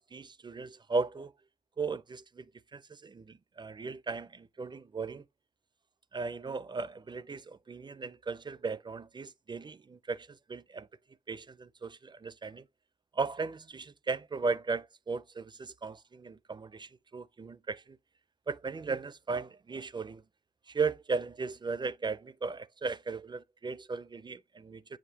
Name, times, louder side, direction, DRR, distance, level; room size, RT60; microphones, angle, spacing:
voice 1, 0.0-1.3 1.8-5.3 6.1-10.9 11.3-12.7 13.1-18.0 18.5-20.2 20.7-25.0, right 4 dB, 30° right, 0.4 m, -36 dB
7.4 x 5.0 x 2.7 m
cardioid pair, 90°, 16 cm